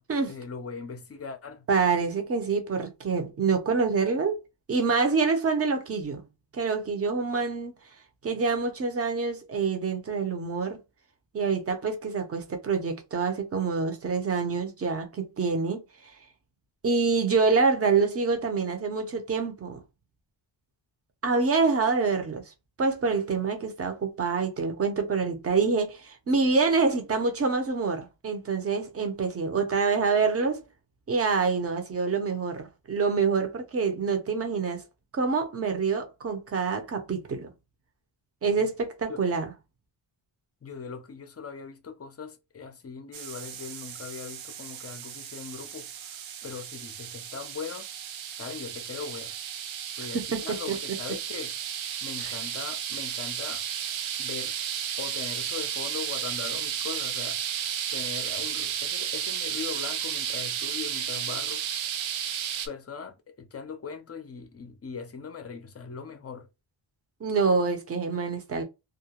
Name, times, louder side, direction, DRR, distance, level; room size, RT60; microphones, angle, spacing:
voice 1, 0.3-1.7 38.6-38.7 39.1-39.2 40.6-47.9 48.4-49.3 50.0-51.6 52.0-53.6 54.2-54.5 55.0-57.4 57.9-61.7 62.6-66.5, left 5 dB, 35° left, 0.5 m, -40 dB
voice 2, 1.7-4.4 4.7-6.2 6.5-7.7 8.2-10.8 11.3-15.8 16.8-19.8 21.2-22.4 22.8-30.6 31.1-34.8 35.1-37.5 38.4-39.5 50.1-50.6 52.2-52.4 67.2-68.6, right 4 dB, 30° right, 0.6 m, -26 dB
sound 1, 43.1-62.7, right 9 dB, 85° right, 0.6 m, -33 dB
2.4 x 2.1 x 2.8 m
wide cardioid pair, 140°, 46 cm